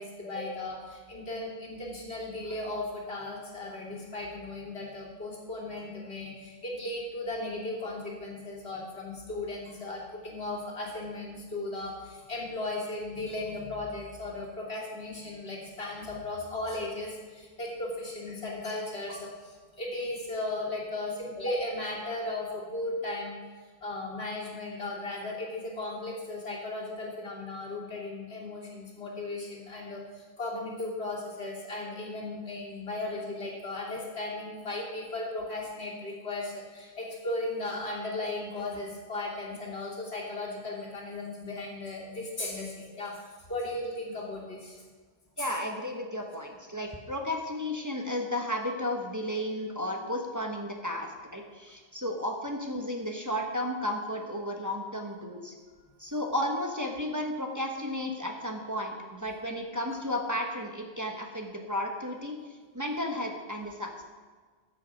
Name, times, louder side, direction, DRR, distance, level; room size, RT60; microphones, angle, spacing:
voice 1, 0.0-23.4 23.8-44.8 45.4-45.5, left 2 dB, 90° left, -4 dB, 3.2 m, -36 dB
voice 2, 45.4-55.5 56.0-62.4 62.7-64.0, left 1 dB, 20° right, 1 dB, 1.2 m, -33 dB
14.0 x 7.7 x 5.3 m, 1.5 s
omnidirectional pair, 1.1 m